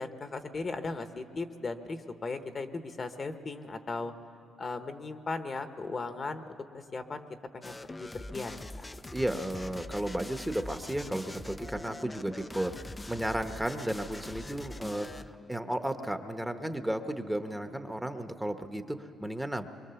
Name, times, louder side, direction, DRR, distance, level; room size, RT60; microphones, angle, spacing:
voice 1, 0.0-4.1 4.6-6.4 6.7-7.3 7.5-8.7, left 3 dB, 40° left, 8 dB, 1.1 m, -37 dB
sound 1, 7.6-15.4, left 2 dB, 15° left, 0.5 m, -43 dB
voice 2, 9.1-12.7 13.1-19.7, right 1 dB, 5° right, 7 dB, 1.0 m, -34 dB
23.5 x 22.0 x 7.0 m, 2.7 s
cardioid pair, 90°, 0 cm